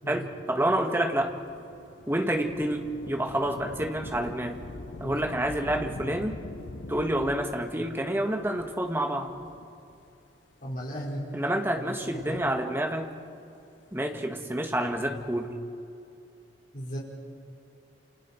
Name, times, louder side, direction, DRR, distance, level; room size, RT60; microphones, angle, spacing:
voice 1, 0.1-1.3 2.1-4.6 5.0-6.3 6.9-9.3 11.3-13.1 13.9-15.5, right 1 dB, 15° right, 4 dB, 1.6 m, -28 dB
Thunder / Rain, 1.1-10.1 10.9-11.0 11.9-13.2 14.7-15.4, left 2 dB, 85° left, 0.8 m, -44 dB
voice 2, 10.6-11.3 11.8-11.9 12.3-12.4 16.7-17.0, equal, 50° left, -6 dB, 5.6 m, -35 dB
28.5 x 28.0 x 4.6 m, 2.7 s
head